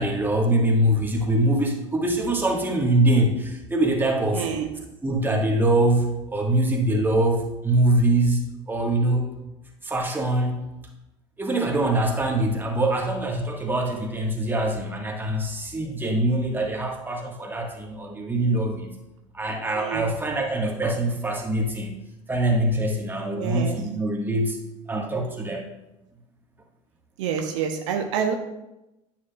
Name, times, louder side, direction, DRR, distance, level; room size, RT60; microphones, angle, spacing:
voice 1, 0.0-4.5 5.0-8.4 8.7-9.2 9.8-10.6 11.4-19.0 19.3-22.0 22.3-24.6 24.9-25.6, right 1 dB, 10° right, 0 dB, 1.5 m, -23 dB
voice 2, 4.3-4.7 19.8-20.1 23.4-23.8 27.2-28.3, right 7 dB, 65° right, 4 dB, 0.7 m, -27 dB
9.6 x 5.9 x 2.4 m, 0.94 s
figure-of-eight pair, 70°, 17 cm